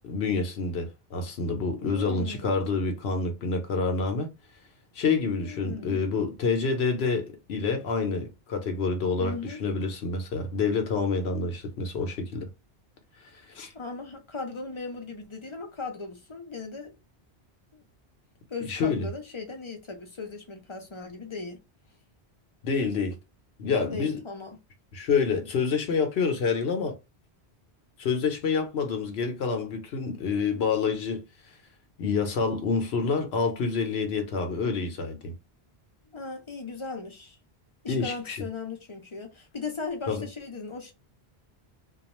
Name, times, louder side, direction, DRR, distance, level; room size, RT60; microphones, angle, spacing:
voice 1, 0.0-4.3 4.9-12.5 13.3-13.7 18.7-19.1 22.6-23.2 23.6-24.2 24.9-27.0 28.0-31.2 32.0-35.3 37.9-38.4 40.1-40.3, left 4 dB, 80° left, 0.9 m, -27 dB
voice 2, 1.8-2.5 5.4-6.0 9.2-9.6 13.7-16.9 17.7-17.8 18.5-21.6 23.9-24.6 36.1-37.4 37.8-40.9, left 4 dB, 35° left, 0.6 m, -38 dB
2.4 x 2.3 x 2.9 m
omnidirectional pair, 1.1 m